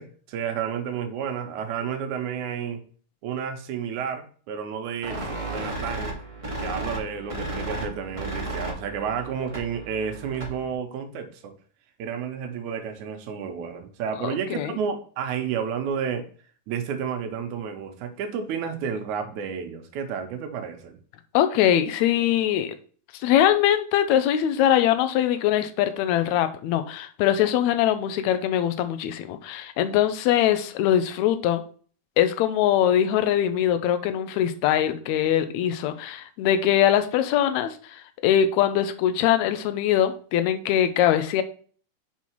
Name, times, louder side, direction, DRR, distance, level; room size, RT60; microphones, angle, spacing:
voice 1, 0.0-2.8 3.2-6.1 6.6-11.5 12.0-16.3 16.7-21.0, right 7 dB, 75° right, 6 dB, 2.0 m, -31 dB
sound 1, 5.0-10.7, right 2 dB, 40° right, 0.4 m, -34 dB
voice 2, 14.2-14.7 21.3-22.7 23.2-31.6 32.2-41.4, left 11 dB, 80° left, 10 dB, 1.6 m, -22 dB
5.6 x 4.4 x 4.5 m, 0.43 s
omnidirectional pair, 3.9 m